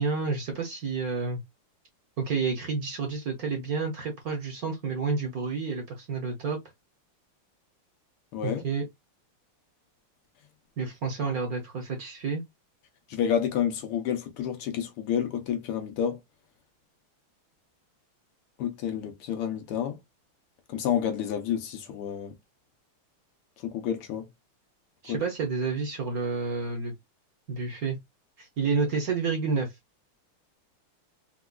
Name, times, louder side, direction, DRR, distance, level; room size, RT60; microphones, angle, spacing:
voice 1, 0.0-1.4 2.2-6.6 8.4-8.8 10.8-12.4 25.0-26.9 27.5-28.0 28.4-29.7, right 4 dB, 55° right, 1.1 m, -29 dB
voice 2, 8.3-8.6 13.1-16.2 18.6-20.0 20.7-22.3 23.6-24.3 25.1-25.2, left 8 dB, 85° left, 1.8 m, -29 dB
4.7 x 2.3 x 2.3 m
omnidirectional pair, 2.4 m